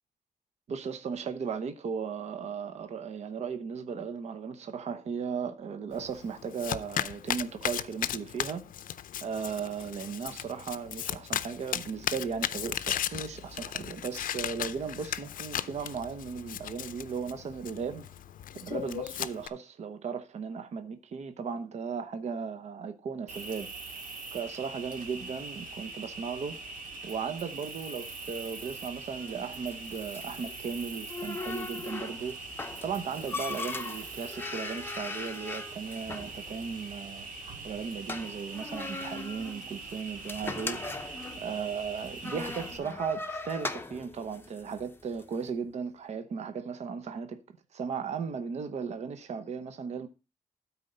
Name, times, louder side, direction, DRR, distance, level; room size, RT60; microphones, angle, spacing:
voice 1, 0.7-8.6 9.2-18.1 18.6-24.0 24.3-37.3 37.6-50.1, right 6 dB, 55° right, 0.8 m, -36 dB
Domestic sounds home sounds, 5.9-19.5, left 10 dB, 85° left, 0.5 m, -36 dB
Cricket, 23.3-42.8, right 3 dB, 80° right, 1.9 m, -42 dB
sound 1, 28.1-45.4, left 3 dB, 15° left, 0.6 m, -40 dB
12.5 x 4.4 x 5.3 m
wide cardioid pair, 180°, 14 cm